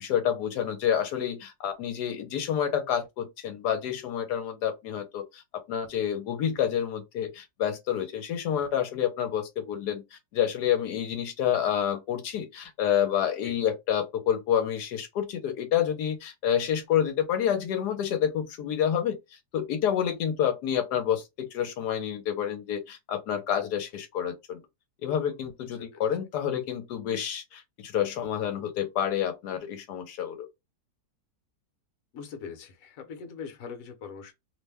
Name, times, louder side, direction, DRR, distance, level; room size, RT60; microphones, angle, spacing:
voice 1, 0.0-19.2 19.5-21.2 21.5-24.6 25.0-30.4, left 9 dB, 85° left, 1.2 m, -28 dB
voice 2, 32.1-34.3, left 6 dB, 60° left, 1.1 m, -41 dB
2.9 x 2.1 x 3.3 m
omnidirectional pair, 1.7 m